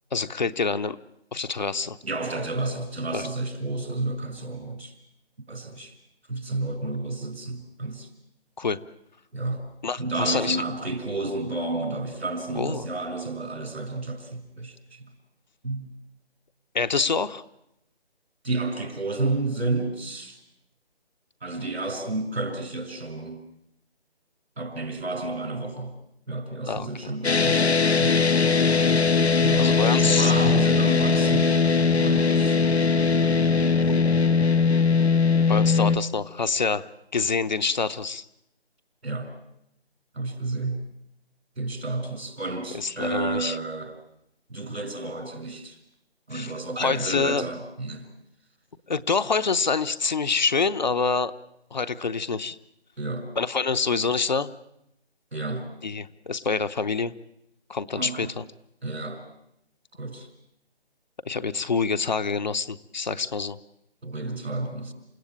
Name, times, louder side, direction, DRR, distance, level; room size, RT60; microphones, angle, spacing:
voice 1, 0.1-1.0 1.3-2.0 3.1-3.3 8.6-8.8 9.8-10.6 12.5-12.9 16.7-17.4 26.7-27.1 29.6-30.3 35.5-38.2 42.7-43.6 46.3-47.4 48.9-51.3 51.7-52.6 53.4-54.5 55.8-57.1 57.7-58.4 61.2-63.6, left 4 dB, 45° left, 12 dB, 0.8 m, -26 dB
voice 2, 2.0-4.9 5.5-5.9 6.3-8.1 9.3-9.7 10.0-15.1 15.6-15.9 18.4-20.4 21.4-23.4 24.6-25.9 26.3-28.8 29.4-31.5 32.0-32.6 39.0-39.3 40.1-40.8 41.6-43.9 44.5-45.8 46.3-48.1 53.0-53.3 55.3-55.7 58.0-58.3 58.8-59.2 59.9-60.3 64.0-64.9, right 2 dB, 80° right, 7 dB, 5.9 m, -31 dB
sound 1, 27.2-36.0, left 5 dB, 80° left, 1.1 m, -20 dB
28.0 x 16.0 x 8.8 m, 0.81 s
figure-of-eight pair, 160°, 32 cm